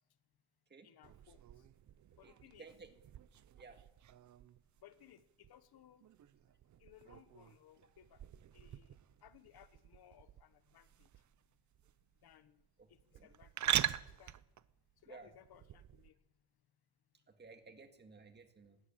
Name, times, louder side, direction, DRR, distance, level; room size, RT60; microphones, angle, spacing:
voice 1, 0.8-1.6 2.2-2.7 4.8-6.1 6.8-8.3 8.5-11.1 12.2-12.6 12.9-14.4 15.0-16.1, left 11 dB, 60° left, 13 dB, 1.2 m, -63 dB
sound 1, 1.0-16.1, right 11 dB, 45° right, 0.7 m, -44 dB
voice 2, 2.2-2.9 3.6-3.8 12.8-13.3 15.1-15.3 17.1-18.8, right 4 dB, 25° right, 7 dB, 1.9 m, -56 dB
20.0 x 16.5 x 8.7 m, 0.92 s
cardioid pair, 175°, 42 cm